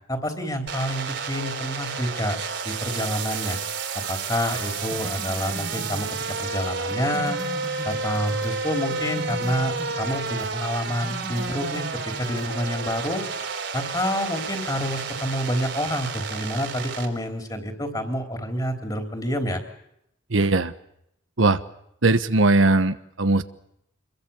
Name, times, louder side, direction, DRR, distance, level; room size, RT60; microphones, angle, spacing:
voice 1, 0.1-2.4 2.6-3.6 4.1-6.1 6.4-7.4 7.8-11.9 12.2-13.2 13.7-19.6, equal, 20° left, 5 dB, 3.6 m, -28 dB
sound 1, 0.7-17.1, right 4 dB, 65° right, 3.8 m, -31 dB
sound 2, 4.9-8.6 8.9-10.6 10.9-12.5, right 1 dB, 20° right, 2.7 m, -39 dB
voice 2, 20.3-20.7 21.4-21.6 22.0-23.4, right 2 dB, 85° right, 11 dB, 1.3 m, -19 dB
27.0 x 22.5 x 7.1 m, 0.76 s
head